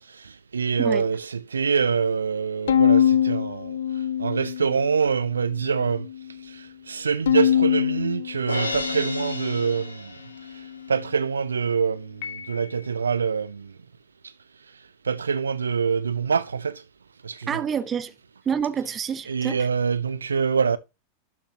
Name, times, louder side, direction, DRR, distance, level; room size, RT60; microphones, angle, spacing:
voice 1, 0.1-3.8 4.2-6.1 6.4-10.1 10.5-10.6 10.9-13.7 15.0-16.8 17.2-17.6 19.3-20.8, right 6 dB, 75° right, 0.4 m, -25 dB
voice 2, 0.8-1.1 17.5-18.1 18.4-19.7, right 7 dB, 25° right, 0.9 m, -28 dB
Bowed string instrument, 2.7-5.0 5.5-6.3 7.3-9.8, left 9 dB, 65° left, 0.6 m, -24 dB
Crash cymbal, 8.5-10.7, left 2 dB, 80° left, 1.5 m, -32 dB
Piano, 12.2-13.3, left 7 dB, 45° left, 2.4 m, -40 dB
12.0 x 6.4 x 2.9 m
figure-of-eight pair, 90°, 0 cm